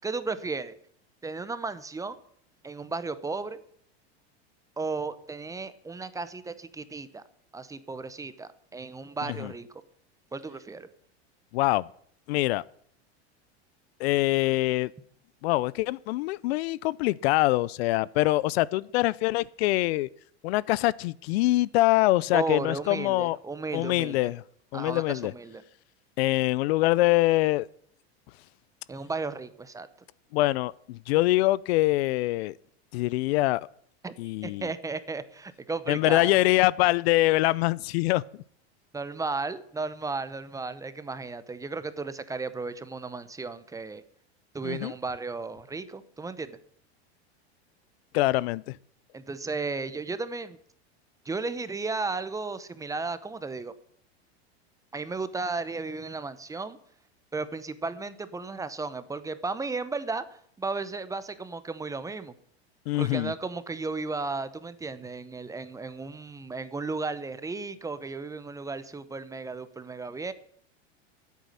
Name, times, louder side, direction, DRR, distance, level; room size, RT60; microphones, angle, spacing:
voice 1, 0.0-0.7 1.2-2.2 2.6-3.6 4.8-7.2 7.5-9.8 10.3-10.9 22.3-24.3 24.7-25.6 28.9-29.9 34.0-34.1 34.4-36.4 38.9-44.0 44.5-46.6 49.1-50.6 51.3-53.7 54.9-56.8 57.3-60.2 60.6-62.3 62.9-70.3, right 3 dB, 10° right, 0.7 m, -34 dB
voice 2, 11.5-11.8 12.3-12.6 14.0-14.9 15.4-20.1 20.4-23.4 23.7-24.4 24.7-25.3 26.2-27.7 30.3-32.5 32.9-33.6 34.2-34.7 35.9-38.2 44.6-44.9 48.1-48.8 62.9-63.3, left 18 dB, 70° left, 0.5 m, -24 dB
10.0 x 8.4 x 9.7 m
supercardioid pair, 130°, 33 cm